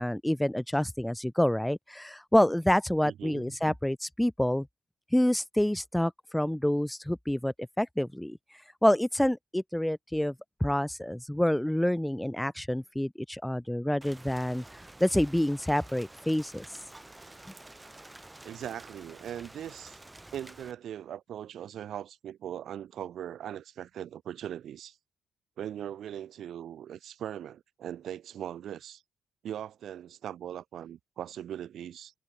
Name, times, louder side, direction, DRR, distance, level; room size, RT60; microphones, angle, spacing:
voice 1, 0.0-4.7 5.1-8.4 8.8-10.3 10.6-14.6 15.0-16.8, left 1 dB, 5° left, 0.4 m, -27 dB
voice 2, 3.0-3.8 18.4-20.0 20.3-25.0 25.6-29.0 29.4-32.1, right 10 dB, 70° right, 7.8 m, -40 dB
Rain, 14.0-20.7, right 2 dB, 15° right, 3.8 m, -50 dB
cardioid pair, 85°, 0 cm